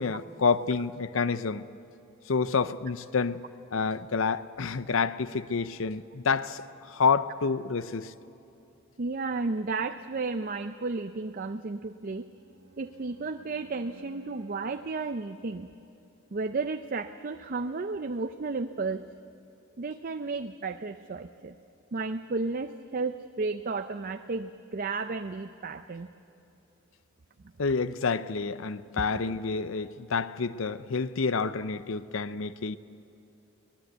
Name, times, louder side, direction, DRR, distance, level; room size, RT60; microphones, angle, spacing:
voice 1, 0.0-1.6 2.3-3.4 3.7-8.1 27.6-32.8, left 5 dB, 65° left, 0.6 m, -28 dB
voice 2, 9.0-12.2 12.8-15.7 16.3-19.0 19.8-21.6 21.9-26.1 29.1-29.4, right 3 dB, 40° right, 0.5 m, -33 dB
Bowed string instrument, 11.9-15.1, right 2 dB, 80° right, 1.4 m, -53 dB
24.0 x 19.0 x 8.0 m
head